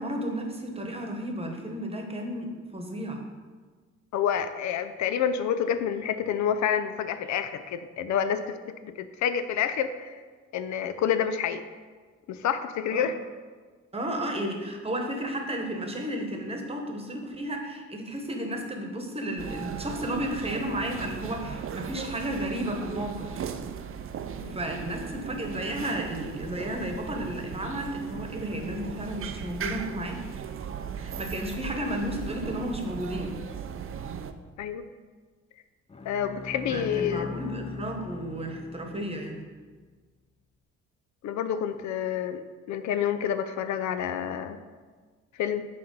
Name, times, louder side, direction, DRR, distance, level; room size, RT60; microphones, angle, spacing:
voice 1, 0.0-3.2 12.9-13.1 13.9-23.3 24.5-30.2 30.9-33.4 36.7-39.4, equal, 20° right, 3 dB, 1.1 m, -33 dB
voice 2, 4.1-8.6 8.8-10.1 10.5-11.7 12.3-13.2 24.4-24.6 34.6-34.9 36.1-37.3 41.2-44.6 45.4-45.7, left 8 dB, 70° left, 10 dB, 0.5 m, -28 dB
sound 1, 19.4-34.3, right 7 dB, 45° right, 0.5 m, -37 dB
Bowed string instrument, 35.9-39.4, left 4 dB, 20° left, 0.5 m, -40 dB
6.3 x 4.2 x 5.3 m, 1.4 s
cardioid pair, 90°, 30 cm